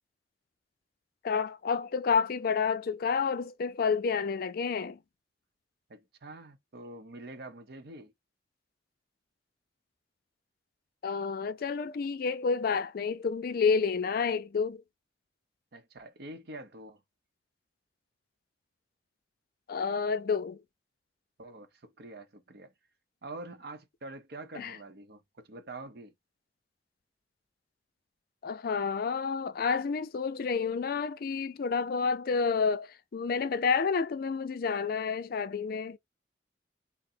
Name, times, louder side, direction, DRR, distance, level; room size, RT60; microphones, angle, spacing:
voice 1, 1.2-5.0 11.0-14.8 19.7-20.6 24.6-24.8 28.4-36.0, left 5 dB, 55° left, 0.4 m, -29 dB
voice 2, 5.9-8.1 15.7-17.0 21.4-22.7 23.2-26.1, right 2 dB, 60° right, 0.7 m, -46 dB
3.7 x 2.0 x 4.1 m
head